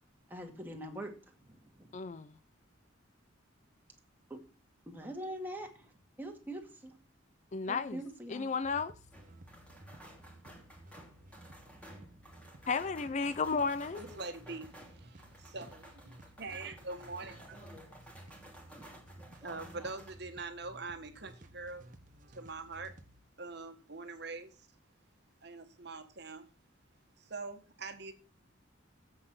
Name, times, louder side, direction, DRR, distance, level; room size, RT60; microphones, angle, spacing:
voice 1, 0.3-1.3 1.6-1.9 4.3-4.4 4.9-5.9 6.2-6.9 7.7-8.5, right 1 dB, 10° right, 2.1 m, -43 dB
voice 2, 1.9-2.3 7.5-8.0 8.3-8.9 12.7-14.0, left 4 dB, 35° left, 0.4 m, -33 dB
sound 1, 8.6-23.2, right 1 dB, 40° right, 1.0 m, -56 dB
sound 2, 9.1-20.1, right 1 dB, 5° left, 2.9 m, -54 dB
voice 3, 13.9-17.6 19.4-21.8 22.3-22.9 23.4-24.7 25.4-26.5 27.2-28.1, right 3 dB, 55° right, 1.5 m, -44 dB
7.9 x 7.7 x 7.7 m
head